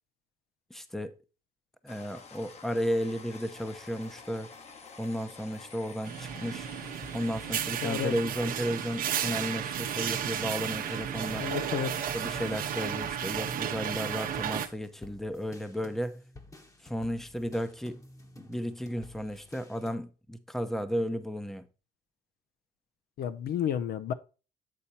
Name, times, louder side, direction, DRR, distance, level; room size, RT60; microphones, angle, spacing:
voice 1, 0.7-1.1 1.8-4.5 5.0-6.7 7.1-11.5 12.1-16.2 16.8-18.0 18.4-21.7, equal, ahead, 0.7 m, -34 dB
sound 1, 1.9-12.7, left 4 dB, 40° left, 1.0 m, -50 dB
sound 2, 3.6-5.3 5.5-8.2 8.5-19.9, left 2 dB, 20° left, 1.1 m, -53 dB
sound 3, 6.0-14.7, right 9 dB, 55° right, 0.9 m, -33 dB
voice 2, 7.8-8.2 11.4-12.1 23.2-24.1, left 9 dB, 65° left, 0.7 m, -31 dB
8.4 x 4.3 x 4.1 m
cardioid pair, 110°, 17 cm